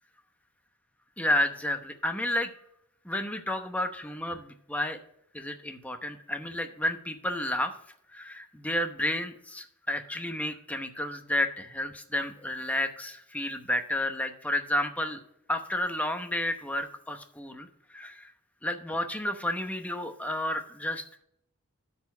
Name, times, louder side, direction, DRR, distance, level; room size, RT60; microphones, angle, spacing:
voice 1, 1.2-2.5 3.0-5.0 5.3-7.7 8.1-15.2 15.5-17.7 17.9-18.3 18.6-21.2, left 1 dB, 5° left, 6 dB, 0.9 m, -31 dB
13.0 x 4.3 x 5.5 m, 0.72 s
head